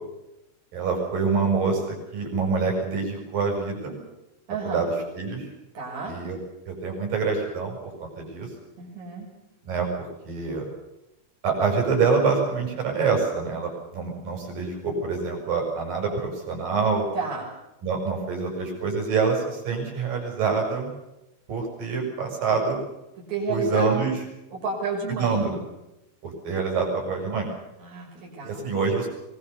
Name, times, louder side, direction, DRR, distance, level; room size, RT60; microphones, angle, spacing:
voice 1, 0.7-3.9 4.6-5.5 6.1-6.4 6.7-8.5 9.7-10.7 11.4-17.1 17.8-20.9 21.5-22.8 23.5-24.1 25.2-25.6 26.2-27.5 28.4-29.1, right 5 dB, 65° right, 1 dB, 8.1 m, -26 dB
voice 2, 4.5-4.8 5.7-6.2 8.8-9.3 17.1-17.5 23.2-23.9 24.5-25.5 27.8-28.7, right 4 dB, 50° right, -2 dB, 7.1 m, -31 dB
24.0 x 21.0 x 6.9 m, 0.92 s
omnidirectional pair, 4.3 m